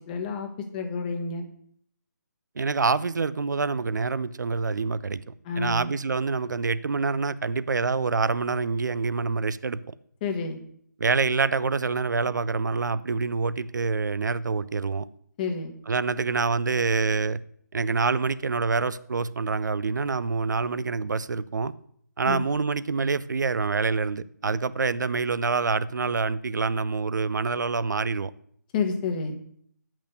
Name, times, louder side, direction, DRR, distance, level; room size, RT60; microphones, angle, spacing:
voice 1, 0.1-1.5 5.4-5.9 10.2-10.6 15.4-15.7 22.2-22.5 28.7-29.4, left 4 dB, 30° left, 1.2 m, -29 dB
voice 2, 2.6-5.2 5.6-9.8 11.0-15.1 15.9-17.4 17.7-21.7 22.2-28.3, right 4 dB, 75° right, 0.5 m, -26 dB
8.5 x 6.0 x 6.7 m
figure-of-eight pair, 150°, 10 cm